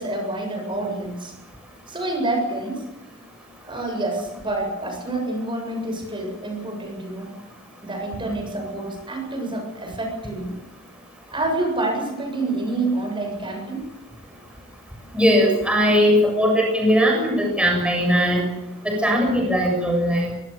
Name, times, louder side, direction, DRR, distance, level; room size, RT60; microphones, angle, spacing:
voice 1, 0.0-1.3 1.9-2.8 3.6-7.3 7.8-10.5 11.3-13.9, right 2 dB, 25° right, 3 dB, 7.5 m, -27 dB
voice 2, 15.1-18.5 18.8-20.4, equal, 5° right, 1 dB, 7.3 m, -19 dB
25.0 x 24.0 x 7.0 m, 0.90 s
head